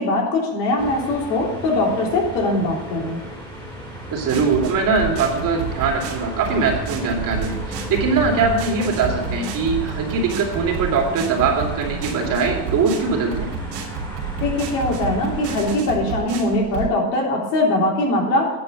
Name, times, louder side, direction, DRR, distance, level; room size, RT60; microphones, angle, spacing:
voice 1, 0.0-3.2 14.4-18.5, left 2 dB, 80° left, -2 dB, 3.4 m, -21 dB
sound 1, 0.8-15.8, right 1 dB, 10° left, 2.9 m, -34 dB
voice 2, 4.1-13.5, right 4 dB, 40° right, 0 dB, 2.8 m, -21 dB
sound 2, 4.3-16.9, right 5 dB, 70° right, 2.9 m, -31 dB
9.7 x 5.3 x 7.8 m, 1.1 s
supercardioid pair, 125°, 49 cm